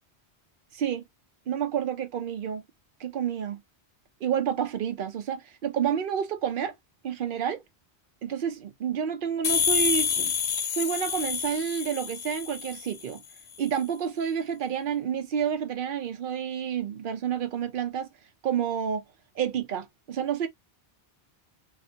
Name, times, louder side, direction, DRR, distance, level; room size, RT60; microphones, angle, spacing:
voice 1, 0.7-1.0 1.5-2.6 3.0-3.6 4.2-6.7 7.0-7.6 8.2-10.3 10.7-13.2 13.6-18.1 18.4-19.0 19.4-20.5, right 8 dB, 60° right, 0.7 m, -29 dB
sound 1, 9.4-13.0, left 6 dB, 55° left, 0.5 m, -28 dB
2.5 x 2.1 x 2.6 m
omnidirectional pair, 1.1 m